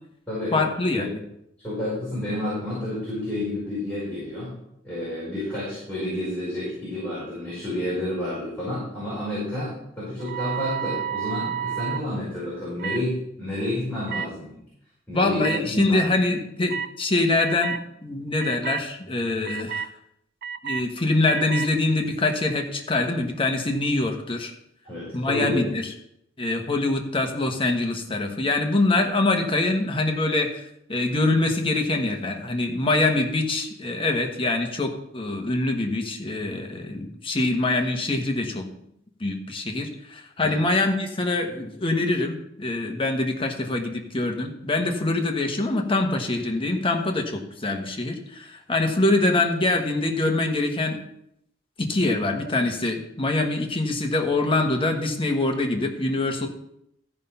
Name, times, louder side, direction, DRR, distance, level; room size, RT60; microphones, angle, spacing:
voice 1, 0.5-1.1 15.1-19.9 20.6-24.5 25.1-25.9 26.4-30.6 30.9-38.7 39.2-51.0 51.8-56.5, left 2 dB, 30° left, 3 dB, 1.3 m, -24 dB
voice 2, 1.6-4.5 4.8-14.6 15.1-16.1 24.8-25.7 40.4-40.5, left 1 dB, 10° left, -10 dB, 5.2 m, -30 dB
sound 1, 10.2-12.0 12.8-13.0 14.1-14.3 15.4-15.6 16.7-16.9 17.4-17.8 18.4-18.8 19.4-19.9 20.4-20.8 21.3-21.7, right 8 dB, 50° right, 0.4 m, -30 dB
14.0 x 5.6 x 5.7 m, 0.77 s
head